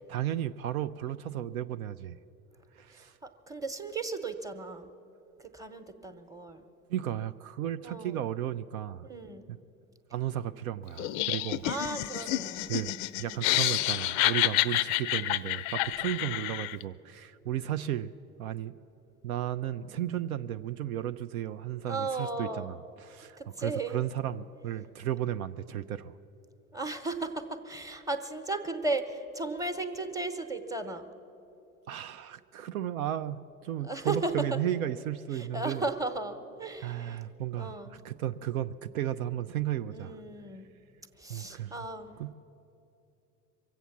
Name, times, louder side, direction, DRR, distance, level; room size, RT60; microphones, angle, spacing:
voice 1, 0.1-2.2 2.7-3.2 6.9-9.1 9.5-9.6 10.1-11.7 12.7-18.1 18.4-18.7 19.2-26.1 31.9-35.8 36.8-40.2 41.3-41.7 42.2-42.3, right 11 dB, 70° right, 11 dB, 0.5 m, -34 dB
voice 2, 2.9-4.9 5.4-6.6 7.8-8.2 9.1-9.5 11.0-11.3 11.6-12.7 13.2-13.4 16.1-16.4 21.9-22.7 23.4-24.0 26.7-31.1 33.8-34.5 35.3-37.2 37.6-38.0 39.9-40.7 41.2-42.2, right 2 dB, 10° right, 8 dB, 1.0 m, -36 dB
Laughter, 11.0-16.8, left 15 dB, 40° left, 0.4 m, -29 dB
23.5 x 8.0 x 7.1 m, 2.9 s
figure-of-eight pair, 75°, 45 cm